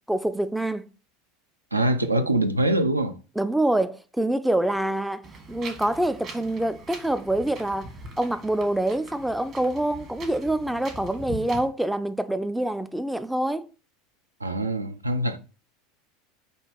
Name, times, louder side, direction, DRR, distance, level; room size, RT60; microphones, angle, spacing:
voice 1, 0.1-0.9 3.4-13.7, right 1 dB, 5° right, 0.3 m, -26 dB
voice 2, 1.7-3.1 14.4-15.4, right 1 dB, 90° right, 0.4 m, -24 dB
Wind, 5.2-11.6, right 2 dB, 40° right, 1.2 m, -42 dB
5.3 x 2.4 x 3.7 m
figure-of-eight pair, 80°, 0 cm